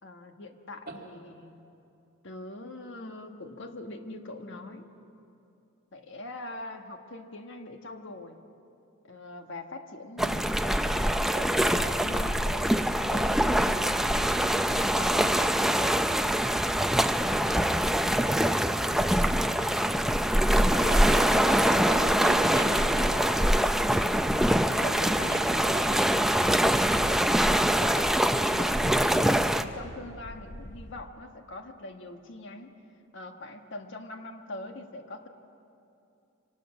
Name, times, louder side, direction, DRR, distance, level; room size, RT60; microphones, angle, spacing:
voice 1, 0.0-1.6 2.2-4.9 5.9-8.4 9.0-12.8 13.1-16.5 20.6-21.0 24.7-25.4 27.7-32.7 33.1-35.3, left 2 dB, 60° left, 5 dB, 1.5 m, -43 dB
sound 1, 10.2-29.6, equal, ahead, 0.5 m, -24 dB
sound 2, 11.6-31.0, left 1 dB, 40° left, 0.8 m, -45 dB
voice 2, 20.5-23.6 24.8-26.1 26.9-27.3, right 1 dB, 50° right, -1 dB, 2.5 m, -38 dB
25.0 x 19.0 x 6.3 m, 2.7 s
head